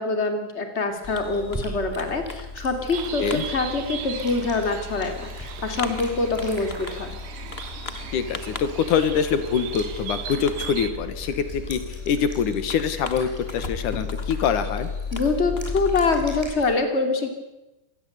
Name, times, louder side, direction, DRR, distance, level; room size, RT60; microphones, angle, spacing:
voice 1, 0.0-7.1 15.1-17.3, left 3 dB, 20° left, 6 dB, 3.1 m, -25 dB
sound 1, 0.8-16.7, equal, 5° right, 6.0 m, -43 dB
Fireworks, 1.0-16.5, left 4 dB, 60° left, 0.6 m, -36 dB
Bird, 2.9-10.9, right 8 dB, 75° right, 3.2 m, -38 dB
voice 2, 8.1-14.9, left 7 dB, 80° left, 11 dB, 3.1 m, -24 dB
25.5 x 20.0 x 8.2 m, 1.0 s
omnidirectional pair, 3.6 m